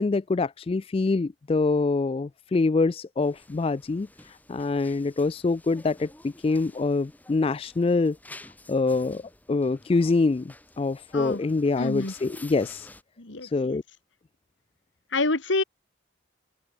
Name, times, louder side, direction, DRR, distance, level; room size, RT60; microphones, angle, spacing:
voice 1, 0.0-8.2 8.7-9.2 9.5-12.9 13.4-13.8, left 3 dB, 30° left, 0.3 m, -25 dB
sound 1, 3.2-13.0, left 2 dB, 10° left, 7.2 m, -51 dB
voice 2, 11.8-12.1 13.2-13.8 15.1-15.6, left 2 dB, 75° left, 2.3 m, -27 dB
open air
head